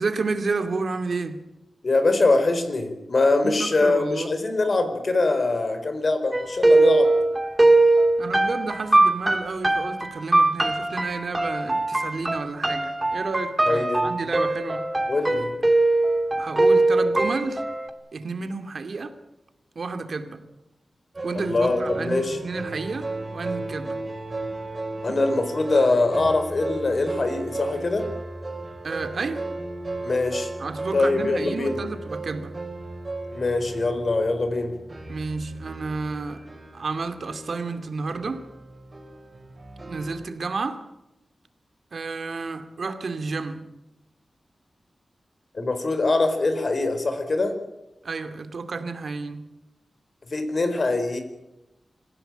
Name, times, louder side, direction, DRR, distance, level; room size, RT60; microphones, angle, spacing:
voice 1, 0.0-1.4 3.4-4.3 8.2-14.9 16.4-17.6 18.1-19.1 19.8-20.4 21.2-24.0 28.8-29.4 30.6-32.5 35.1-36.4 36.7-38.5 39.9-40.8 41.9-43.6 48.0-49.5, right 4 dB, 65° right, 8 dB, 2.4 m, -31 dB
voice 2, 1.8-7.1 13.7-14.1 15.1-15.5 21.3-22.4 25.0-28.1 30.0-30.5 30.9-31.8 33.3-34.7 45.5-47.6 50.3-51.2, left 3 dB, 50° left, 8 dB, 4.4 m, -23 dB
sound 1, 6.3-17.9, right 2 dB, 15° right, 2.5 m, -21 dB
sound 2, 21.1-40.3, right 2 dB, 35° right, 4.9 m, -35 dB
26.5 x 16.0 x 9.0 m, 0.93 s
wide cardioid pair, 105°, 0 cm